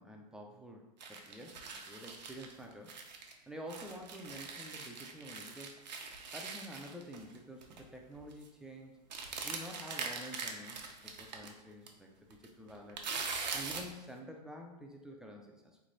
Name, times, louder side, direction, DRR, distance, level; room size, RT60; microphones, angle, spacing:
voice 1, 0.0-3.0 3.5-5.7 6.3-8.9 9.4-13.0 13.5-15.8, equal, 5° right, 0 dB, 0.3 m, -49 dB
sound 1, 1.0-3.3 3.7-7.4 7.6-7.8 8.1-8.5 9.1-11.5 11.9-12.0 12.3-13.9, right 4 dB, 90° right, 0.6 m, -42 dB
3.4 x 3.2 x 2.6 m, 0.98 s
hypercardioid pair, 115°, 21 cm